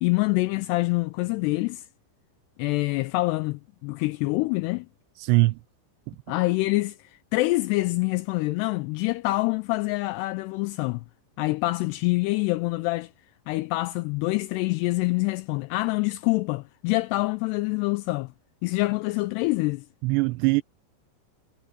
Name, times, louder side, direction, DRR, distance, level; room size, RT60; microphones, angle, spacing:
voice 1, 0.0-1.9 2.6-4.9 6.3-11.0 11.4-13.1 13.5-18.3 18.6-19.9, left 22 dB, 85° left, 2.4 m, -26 dB
voice 2, 5.2-5.6 6.1-6.2 20.0-20.6, right 22 dB, 80° right, 2.8 m, -21 dB
omnidirectional pair, 5.2 m